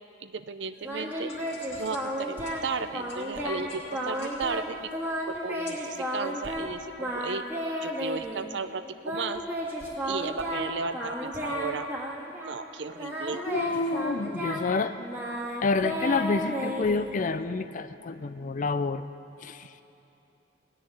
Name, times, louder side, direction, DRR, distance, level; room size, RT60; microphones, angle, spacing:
voice 1, 0.2-1.3 1.8-4.9 5.3-7.4 7.8-9.4 10.0-11.9 12.4-13.4, right 4 dB, 65° right, 12 dB, 0.6 m, -34 dB
sound 1, 0.7-6.0, left 3 dB, 70° left, 2.5 m, -50 dB
Singing, 0.8-2.7 2.9-3.6 3.9-4.7 4.9-6.7 7.0-8.4 9.0-12.6 13.0-17.4, equal, 10° right, 1.8 m, -33 dB
voice 2, 13.5-15.0 15.6-19.1 19.4-19.7, left 3 dB, 40° left, 12 dB, 0.4 m, -28 dB
17.5 x 6.6 x 9.6 m, 3.0 s
head